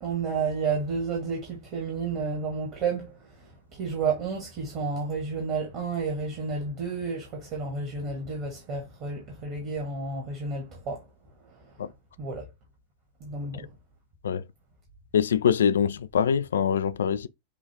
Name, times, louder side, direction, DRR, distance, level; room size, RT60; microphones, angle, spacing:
voice 1, 0.0-11.0 11.5-11.7 12.2-12.4 13.2-13.7, right 4 dB, 40° right, 1.4 m, -31 dB
voice 2, 15.1-17.3, left 8 dB, 65° left, 0.3 m, -24 dB
6.5 x 2.4 x 3.3 m
figure-of-eight pair, 90°, 0 cm